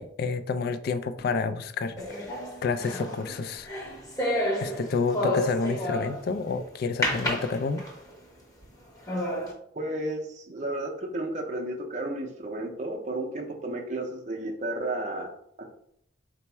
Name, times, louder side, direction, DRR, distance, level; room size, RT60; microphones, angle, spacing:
voice 1, 0.0-2.3 2.6-3.7 4.6-7.8, left 4 dB, 55° left, 11 dB, 0.3 m, -29 dB
sound 1, 2.0-6.4 7.0-8.1 8.6-8.7 9.1-9.5, left 1 dB, 20° left, 0.9 m, -30 dB
voice 2, 9.7-15.3, right 1 dB, 40° right, 1 dB, 0.5 m, -32 dB
4.4 x 2.0 x 4.3 m, 0.70 s
head